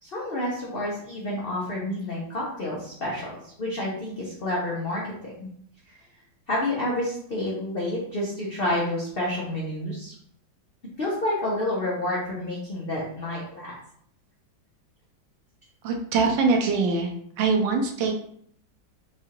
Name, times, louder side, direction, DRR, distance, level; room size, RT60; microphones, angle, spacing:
voice 1, 0.0-5.5 5.9-6.0 6.5-10.1 11.0-13.8, left 1 dB, 65° left, -5 dB, 0.5 m, -29 dB
voice 2, 15.8-17.1 17.4-18.1, right 4 dB, 75° right, 2 dB, 1.4 m, -23 dB
4.7 x 2.4 x 2.9 m, 0.64 s
omnidirectional pair, 2.1 m